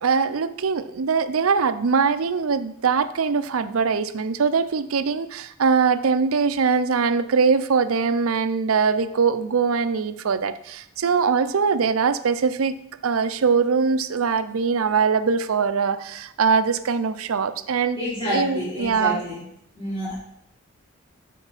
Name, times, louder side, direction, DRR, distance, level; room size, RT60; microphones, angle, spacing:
voice 1, 0.0-12.7 13.0-18.0 18.3-19.2, right 5 dB, 75° right, 12 dB, 0.5 m, -22 dB
voice 2, 18.0-19.4 19.8-20.1, equal, 25° left, -9 dB, 3.3 m, -28 dB
12.5 x 4.6 x 4.1 m, 0.75 s
head